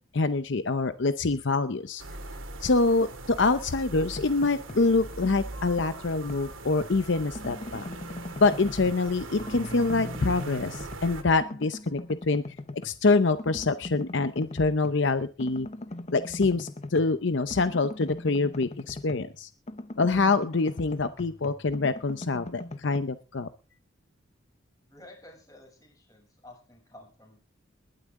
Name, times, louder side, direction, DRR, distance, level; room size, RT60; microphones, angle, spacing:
voice 1, 0.1-2.0 2.6-7.9 8.4-12.0 12.3-12.4 12.8-15.7 16.1-19.5 20.0-23.5, left 3 dB, 65° left, 11 dB, 0.7 m, -25 dB
sound 1, 2.0-11.2, right 2 dB, 90° right, 2.6 m, -40 dB
sound 2, 3.9-4.9 5.2-7.0 7.3-9.1 9.4-11.1 11.4-13.0 13.4-15.0 15.4-19.4 19.7-23.0, left 1 dB, 35° left, 0.8 m, -41 dB
voice 2, 24.9-27.4, left 1 dB, 20° left, 1 dB, 7.1 m, -51 dB
20.5 x 12.0 x 3.7 m, 0.34 s
head